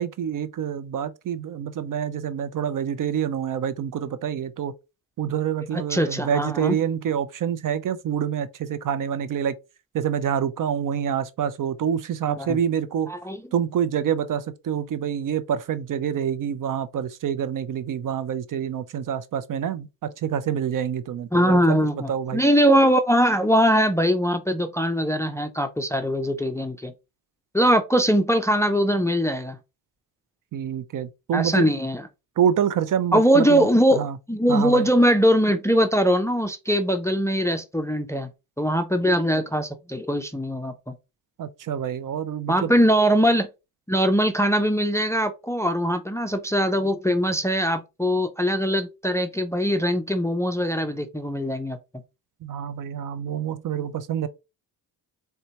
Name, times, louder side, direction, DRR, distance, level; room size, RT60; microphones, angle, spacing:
voice 1, 0.0-4.7 5.2-9.6 9.9-13.1 13.5-21.8 22.1-22.4 30.5-31.7 32.4-34.2 34.5-34.9 41.4-42.7 52.4-54.3, right 8 dB, 50° right, 0.5 m, -27 dB
voice 2, 5.7-6.8 12.4-12.6 13.1-13.4 21.3-26.9 27.5-29.6 31.3-32.0 33.1-38.3 38.6-40.9 42.5-43.5 43.9-51.8, equal, 5° left, 0.4 m, -21 dB
4.1 x 2.2 x 2.8 m
cardioid pair, 65°, 44 cm